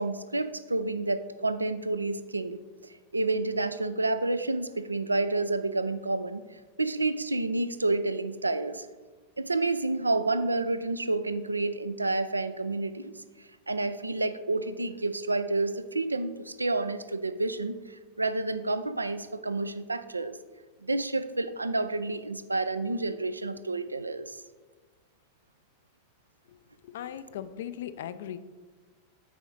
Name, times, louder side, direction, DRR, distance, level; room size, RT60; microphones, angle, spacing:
voice 1, 0.0-6.4 6.8-8.9 9.4-13.1 13.7-20.4 20.8-24.4, right 2 dB, 80° right, 12 dB, 0.4 m, -29 dB
voice 2, 26.8-28.4, left 10 dB, 55° left, 13 dB, 0.4 m, -38 dB
8.3 x 4.9 x 3.9 m, 1.3 s
figure-of-eight pair, 90°, 0 cm